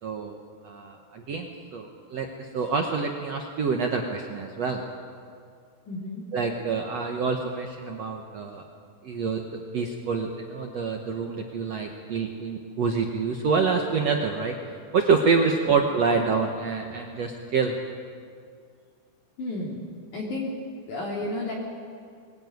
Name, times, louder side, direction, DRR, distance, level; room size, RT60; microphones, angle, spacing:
voice 1, 0.0-0.4 0.6-4.8 6.3-8.6 9.0-14.5 14.9-17.8, right 5 dB, 65° right, 2 dB, 1.6 m, -27 dB
voice 2, 5.9-6.2 19.4-19.8 20.1-20.5 20.9-21.5, left 2 dB, 50° left, -4 dB, 3.9 m, -31 dB
22.0 x 18.0 x 9.4 m, 2.2 s
omnidirectional pair, 4.8 m